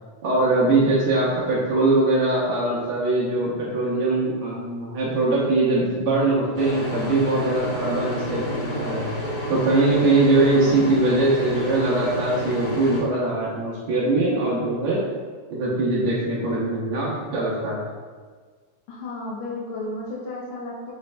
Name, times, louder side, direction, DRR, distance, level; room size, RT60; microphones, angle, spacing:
voice 1, 0.2-9.1 9.5-15.0 15.5-17.8, right 2 dB, 65° right, -6 dB, 2.0 m, -22 dB
sound 1, 6.5-13.0, equal, 45° left, 0.8 m, -30 dB
voice 2, 10.5-11.0 18.9-20.9, left 2 dB, 80° left, -4 dB, 1.6 m, -33 dB
5.2 x 4.5 x 2.2 m, 1.5 s
omnidirectional pair, 3.6 m